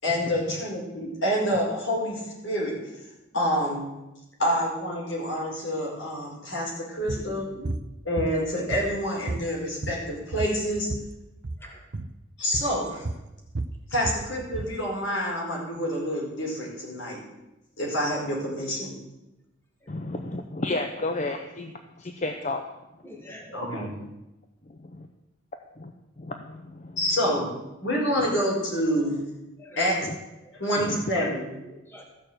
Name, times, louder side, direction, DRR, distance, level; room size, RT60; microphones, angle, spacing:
voice 1, 0.0-2.7 3.3-3.9 4.4-7.5 8.0-10.9 12.4-13.0 13.9-17.2 17.8-18.9 23.5-23.9 27.0-27.5 27.8-29.2 29.8-30.0 30.6-31.5, equal, 75° left, -3 dB, 5.0 m, -27 dB
sound 1, 7.1-7.3 7.6-7.8 8.2-9.0 9.3-11.1 11.4-11.6 11.9-12.1 12.5-12.8 13.0-14.7, right 2 dB, 60° right, 0.7 m, -32 dB
voice 2, 7.2-7.9 11.6-11.8 19.8-19.9 23.0-23.5 29.0-29.1 29.6-29.8 30.4-30.9 31.6-32.0, left 1 dB, 10° left, 0 dB, 1.8 m, -45 dB
voice 3, 19.9-22.6 26.2-27.0 30.0-30.2 30.8-31.0, left 2 dB, 40° left, 5 dB, 0.7 m, -32 dB
14.0 x 6.7 x 8.0 m, 0.98 s
head